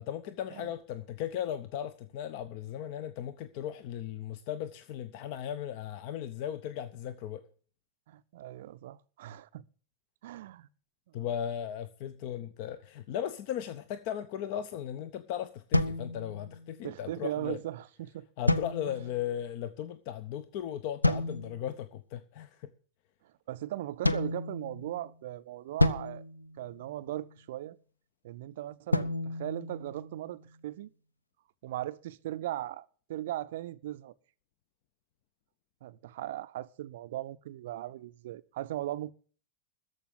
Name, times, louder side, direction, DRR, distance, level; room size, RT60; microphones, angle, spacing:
voice 1, 0.0-7.4 11.1-17.6 18.4-22.7, left 10 dB, 45° left, 0.7 m, -37 dB
voice 2, 8.1-9.7 10.2-10.7 11.1-11.3 16.8-18.3 18.8-19.0 23.5-26.2 26.6-27.8 28.2-30.9 31.6-34.1 35.8-39.1, right 14 dB, 55° right, 0.5 m, -38 dB
sound 1, 15.7-16.8 18.5-19.3 21.0-21.7 24.0-25.1 25.8-27.3 28.9-30.4, left 2 dB, 85° left, 0.6 m, -30 dB
14.0 x 5.3 x 9.2 m
figure-of-eight pair, 90°, 0 cm